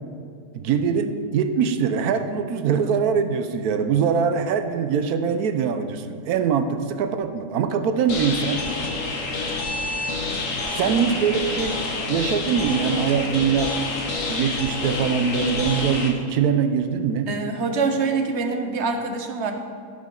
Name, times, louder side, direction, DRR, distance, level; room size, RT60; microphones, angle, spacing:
voice 1, 0.5-8.6 10.7-11.8 12.1-13.8 14.3-17.3, right 7 dB, 85° right, 9 dB, 1.1 m, -23 dB
sound 1, 8.1-16.1, left 3 dB, 60° left, 1.4 m, -28 dB
voice 2, 17.3-19.5, right 4 dB, 55° right, 5 dB, 1.0 m, -25 dB
14.5 x 5.0 x 3.8 m, 2.4 s
omnidirectional pair, 1.6 m